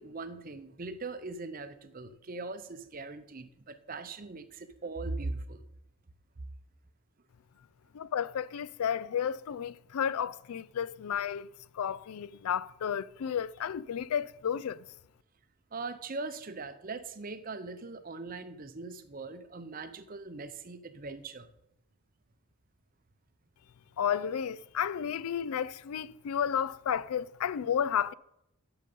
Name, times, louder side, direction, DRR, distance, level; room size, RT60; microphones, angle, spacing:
voice 1, 0.0-5.6 15.7-21.5, right 3 dB, 40° right, 0.7 m, -40 dB
voice 2, 7.9-11.5 11.7-14.8 24.0-28.1, left 8 dB, 80° left, 0.4 m, -32 dB
10.5 x 6.9 x 5.4 m
head